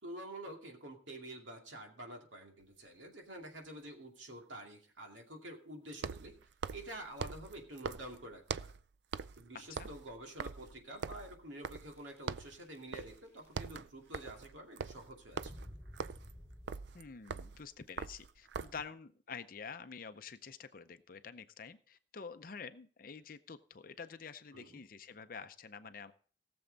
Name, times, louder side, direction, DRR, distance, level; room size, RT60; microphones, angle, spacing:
voice 1, 0.0-6.3 6.7-8.6 9.4-15.7 24.5-24.8, right 1 dB, 90° right, 2 dB, 2.4 m, -48 dB
sound 1, 2.6-2.7 5.9-8.8 9.1-9.4 9.7-12.0 12.3-12.6 12.9-13.2 13.5-18.9, right 5 dB, 65° right, 0.4 m, -43 dB
sound 2, 9.5-9.9 10.6-10.7 10.9-11.0 11.9-12.3 12.6-13.7 14.0-14.6 15.3-17.2, equal, 10° right, 6.1 m, -53 dB
voice 2, 16.9-26.1, left 5 dB, 45° left, 11 dB, 0.6 m, -48 dB
18.0 x 7.0 x 3.9 m, 0.43 s
head